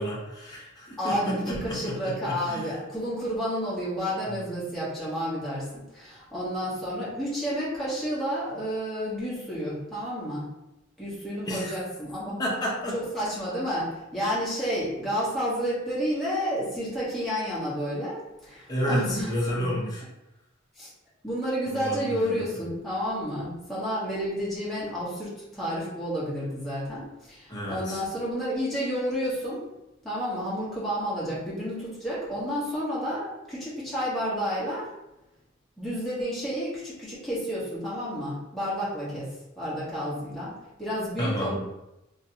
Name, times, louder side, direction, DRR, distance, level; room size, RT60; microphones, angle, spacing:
voice 1, 0.0-2.7 4.3-4.4 11.5-11.8 12.3-12.9 18.7-20.0 21.7-22.7 27.5-28.0 41.2-41.6, equal, 20° left, -5 dB, 0.8 m, -31 dB
voice 2, 1.0-10.5 11.0-12.4 12.9-19.3 19.6-19.7 20.8-20.9 21.2-29.6 30.0-34.9 35.8-41.6, equal, ahead, -9 dB, 1.0 m, -30 dB
3.0 x 2.7 x 2.7 m, 0.91 s
head